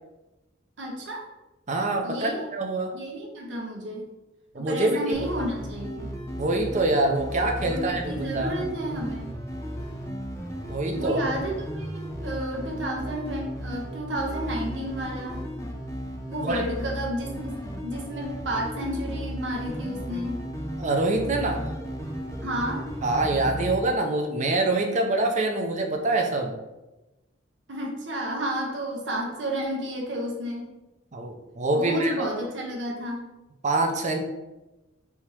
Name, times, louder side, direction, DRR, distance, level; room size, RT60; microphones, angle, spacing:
voice 1, 0.8-1.3 2.0-2.4 2.9-4.1 4.5-6.2 7.7-9.4 10.9-15.5 16.3-20.5 22.4-22.9 27.7-30.7 31.7-33.2, right 1 dB, 75° right, -1 dB, 0.9 m, -31 dB
voice 2, 1.7-2.9 4.5-5.1 6.4-8.6 10.7-11.2 16.4-16.6 20.8-21.7 23.0-26.5 31.1-32.1 33.6-34.2, right 2 dB, 40° right, 3 dB, 0.6 m, -25 dB
sound 1, 5.1-23.7, equal, 15° left, 0.7 m, -35 dB
3.5 x 2.8 x 4.6 m, 1.0 s
head